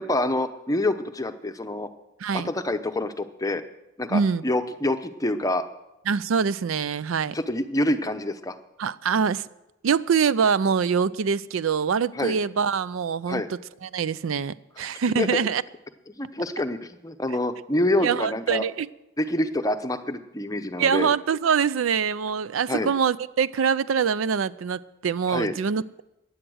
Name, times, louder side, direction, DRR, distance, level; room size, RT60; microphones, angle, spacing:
voice 1, 0.0-1.9 2.3-3.6 4.0-5.6 7.3-8.6 12.2-12.4 13.3-13.5 15.2-15.4 16.1-18.6 19.2-21.1 22.7-22.9 25.3-25.5, left 1 dB, 15° left, 8 dB, 0.7 m, -26 dB
voice 2, 2.2-2.5 4.1-4.4 6.1-7.4 8.8-9.5 9.8-15.6 18.0-18.9 20.8-26.0, right 6 dB, 80° right, 18 dB, 0.4 m, -24 dB
15.5 x 10.0 x 6.3 m, 0.92 s
head